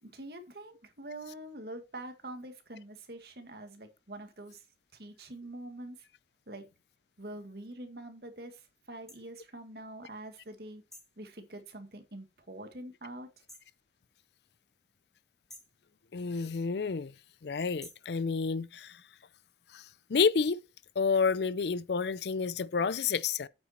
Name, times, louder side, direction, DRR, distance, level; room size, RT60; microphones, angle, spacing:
voice 1, 0.0-4.6 4.9-6.0 6.5-6.7 7.2-10.8 11.2-13.3, right 1 dB, 60° right, 2.0 m, -45 dB
sound 1, 9.1-9.2 10.9-11.2 13.5-13.8 15.5-15.8 17.8-18.1, equal, ahead, 2.0 m, -51 dB
voice 2, 16.1-17.1 17.4-19.0 19.7-19.8 20.1-20.6 21.0-23.5, left 5 dB, 70° left, 0.5 m, -29 dB
8.8 x 7.1 x 4.3 m
head